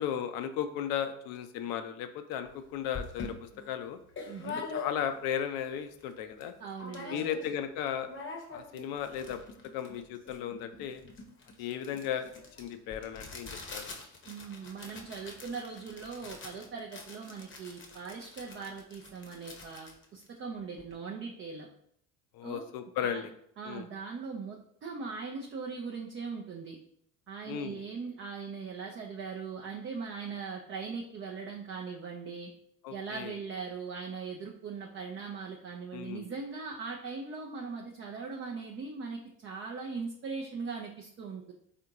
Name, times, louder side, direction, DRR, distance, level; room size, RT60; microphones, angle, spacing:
voice 1, 0.0-4.0 4.4-6.5 7.1-8.1 8.5-9.4 9.7-11.0 11.6-12.3 12.6-13.8 22.3-23.3 23.6-23.8 27.5-27.8 32.8-33.3 35.9-36.3, left 9 dB, 60° left, 9 dB, 0.5 m, -35 dB
sound 1, 2.5-2.6 2.9-5.3 5.7-5.8 6.0-6.5 6.8-7.6 7.9-20.9, left 4 dB, 30° left, 0.8 m, -44 dB
voice 2, 4.3-4.6 6.6-7.4 14.3-21.7 22.4-22.6 23.0-23.3 23.6-24.6 24.8-26.8 27.3-32.5 32.9-41.5, right 5 dB, 30° right, 0 dB, 0.4 m, -40 dB
3.5 x 2.5 x 2.8 m, 0.69 s
hypercardioid pair, 70°, 40 cm